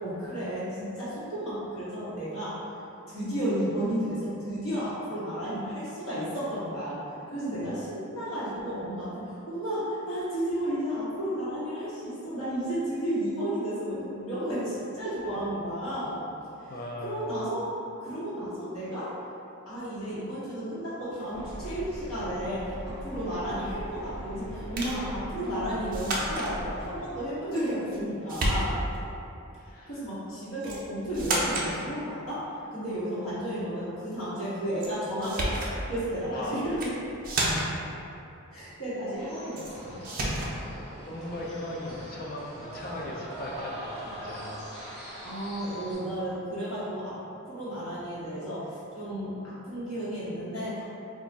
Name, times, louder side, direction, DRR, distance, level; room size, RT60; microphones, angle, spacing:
voice 1, 0.0-2.6 3.1-7.0 7.3-16.2 16.6-16.7 17.0-17.7 18.0-19.1 19.6-28.8 29.9-36.9 37.2-37.3 38.5-40.0 45.2-47.1 47.5-50.8, equal, 80° left, -11 dB, 1.3 m, -33 dB
voice 2, 16.7-17.4 29.5-30.0 36.2-36.6 41.0-44.7, left 1 dB, 45° left, -2 dB, 0.4 m, -38 dB
sound 1, 21.3-27.0, equal, 5° left, 0.7 m, -40 dB
sound 2, 24.8-25.0 25.9-26.5 27.6-28.0 28.3-29.0 30.6-30.8 31.1-31.7 34.8-34.9 35.2-35.7 36.6-36.9 37.2-37.8 39.6-39.7 40.0-40.5, right 1 dB, 40° right, 0.4 m, -30 dB
sound 3, 39.1-45.9, equal, 30° left, 1.3 m, -42 dB
2.4 x 2.3 x 3.9 m, 2.8 s
head